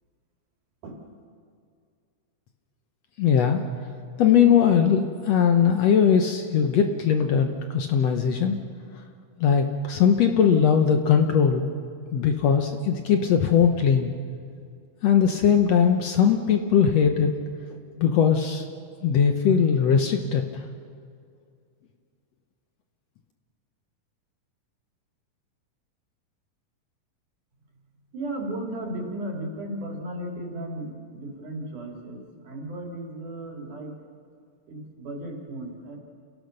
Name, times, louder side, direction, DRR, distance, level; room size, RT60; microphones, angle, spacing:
voice 1, 3.2-3.6 4.2-8.6 9.4-11.7 12.1-14.1 15.0-17.3 18.0-18.6 19.0-20.6, left 7 dB, 65° left, 5 dB, 1.8 m, -20 dB
voice 2, 28.1-33.9 34.7-36.0, right 1 dB, 65° right, 1 dB, 4.2 m, -35 dB
29.0 x 17.0 x 6.6 m, 2.3 s
omnidirectional pair, 3.8 m